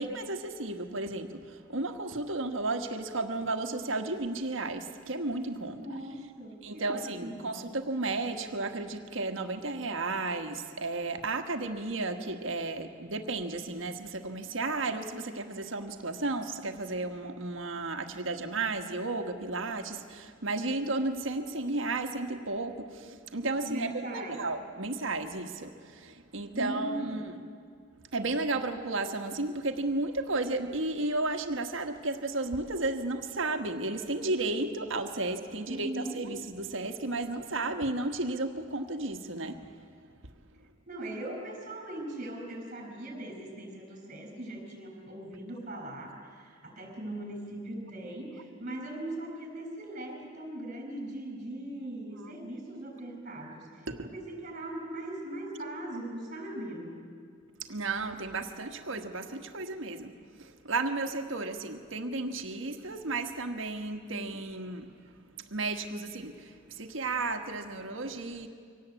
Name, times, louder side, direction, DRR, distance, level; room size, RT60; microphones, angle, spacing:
voice 1, 0.0-5.8 6.6-27.3 28.1-39.7 53.9-54.1 57.6-65.0 65.4-68.5, right 2 dB, 70° right, 6 dB, 1.5 m, -33 dB
voice 2, 5.7-7.6 23.6-24.4 26.5-27.2 35.7-36.2 40.9-53.7 54.1-57.0, right 1 dB, 40° right, 2 dB, 6.1 m, -39 dB
24.0 x 18.0 x 8.4 m, 2.2 s
head